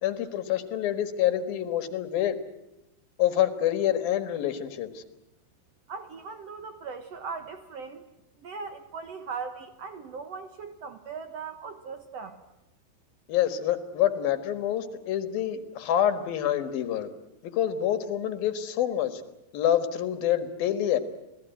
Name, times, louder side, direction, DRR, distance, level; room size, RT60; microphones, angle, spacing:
voice 1, 0.0-2.4 3.2-5.0 13.3-17.1 17.4-19.2 19.5-21.0, left 11 dB, 65° left, 10 dB, 3.1 m, -27 dB
voice 2, 5.9-8.1 8.4-12.4, right 5 dB, 90° right, 8 dB, 1.4 m, -39 dB
28.0 x 18.5 x 9.2 m, 0.89 s
omnidirectional pair, 4.9 m